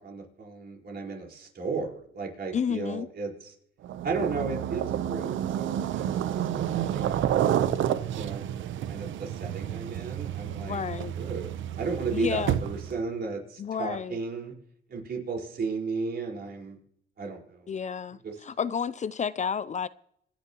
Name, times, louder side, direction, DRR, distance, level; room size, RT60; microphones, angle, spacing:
voice 1, 0.0-3.5 4.0-7.6 8.1-8.5 8.9-10.8 11.1-14.5 14.9-16.8 17.2-17.7 18.2-18.4, right 4 dB, 55° right, 4.6 m, -34 dB
voice 2, 2.5-3.1 10.6-11.1 12.1-12.6 13.6-14.2 17.7-19.9, left 7 dB, 35° left, 0.5 m, -31 dB
sound 1, 3.8-13.0, right 10 dB, 75° right, 0.8 m, -30 dB
26.0 x 10.5 x 3.0 m
cardioid pair, 90°, 20 cm